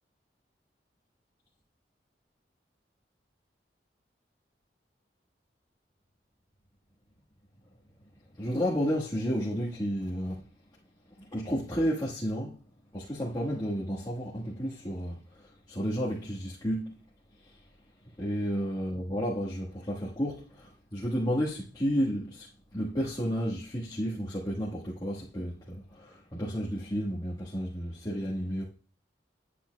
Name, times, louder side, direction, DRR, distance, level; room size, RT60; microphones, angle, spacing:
voice 1, 8.4-10.4 11.2-12.6 12.9-17.0 18.2-28.6, equal, 25° left, 1.4 m, -32 dB
10.0 x 8.4 x 2.3 m
head